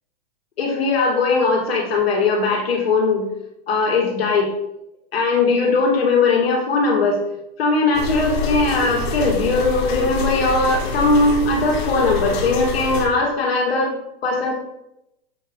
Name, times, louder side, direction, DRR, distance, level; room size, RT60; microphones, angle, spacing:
voice 1, 0.6-3.3 3.7-4.5 5.1-7.2 7.6-13.9 14.2-14.5, left 3 dB, 85° left, -1 dB, 2.6 m, -19 dB
sound 1, 7.9-13.0, left 3 dB, 55° left, 2.3 m, -26 dB
8.0 x 5.9 x 3.9 m, 0.85 s
hypercardioid pair, 145°, 30 cm